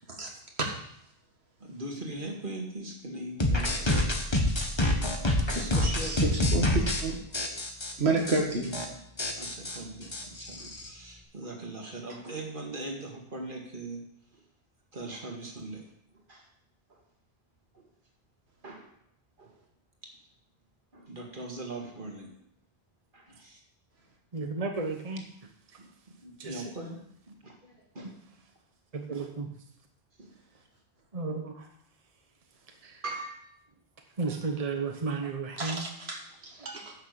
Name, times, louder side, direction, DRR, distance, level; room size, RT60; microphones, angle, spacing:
voice 1, 1.6-4.4 5.5-6.8 9.4-14.0 14.3-14.4 14.9-15.8 16.1-16.5 16.9-17.0 17.7-17.9 18.6-18.9 19.4-19.5 20.9-22.3 23.1-23.6 25.8-25.9 26.2-27.0 27.3-28.1 30.2-30.3 33.0-33.5 34.3-34.4, right 2 dB, 55° right, 1 dB, 2.2 m, -40 dB
sound 1, 3.4-7.0 7.3-7.9 8.3-8.4 8.6-8.9 9.2-10.9, left 1 dB, 25° left, 1.4 m, -27 dB
voice 2, 6.0-7.2 8.0-8.7 35.6-36.9, right 3 dB, 85° right, 0 dB, 2.1 m, -30 dB
voice 3, 24.3-25.2 26.4-26.6 28.9-29.5 31.1-31.7 32.8-33.0 34.2-35.8, right 4 dB, 35° right, 3 dB, 1.1 m, -33 dB
10.0 x 6.5 x 6.6 m, 0.72 s
omnidirectional pair, 1.1 m